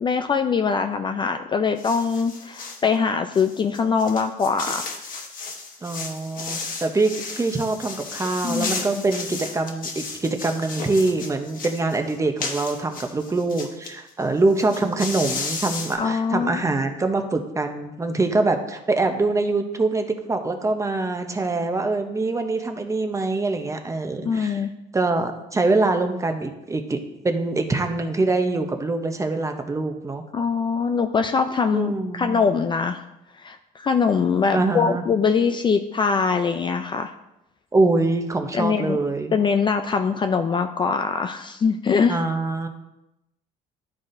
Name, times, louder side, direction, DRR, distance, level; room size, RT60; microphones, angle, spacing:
voice 1, 0.0-4.9 8.4-8.7 16.0-16.5 24.2-24.7 30.3-33.0 33.4-37.1 38.5-39.0 39.3-42.2, left 5 dB, 30° left, 6 dB, 0.3 m, -22 dB
sound 1, 1.8-2.8 3.3-13.9 14.2-14.3 14.5-16.0, left 4 dB, 55° left, 1.1 m, -34 dB
voice 2, 5.8-24.6 24.9-27.0 27.2-30.2 31.7-32.4 34.5-35.0 37.7-39.3 42.1-42.7, right 3 dB, 20° right, 6 dB, 0.7 m, -24 dB
11.5 x 4.0 x 2.6 m, 0.90 s
cardioid pair, 110°, 17 cm